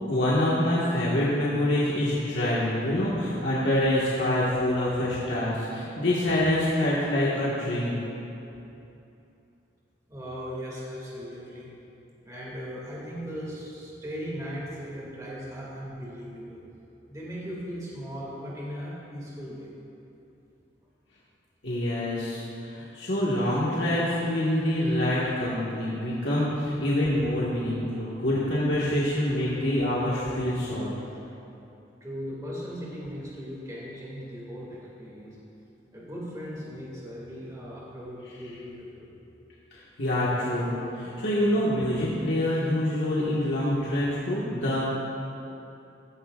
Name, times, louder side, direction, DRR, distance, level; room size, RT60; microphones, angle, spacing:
voice 1, 0.1-8.0 21.6-30.9 39.7-44.8, left 1 dB, 75° left, -7 dB, 1.7 m, -26 dB
voice 2, 10.1-11.7 12.2-16.6 17.1-19.7 32.0-35.4 35.9-39.1, equal, 20° right, -6 dB, 2.4 m, -38 dB
16.5 x 13.5 x 2.5 m, 2.9 s
head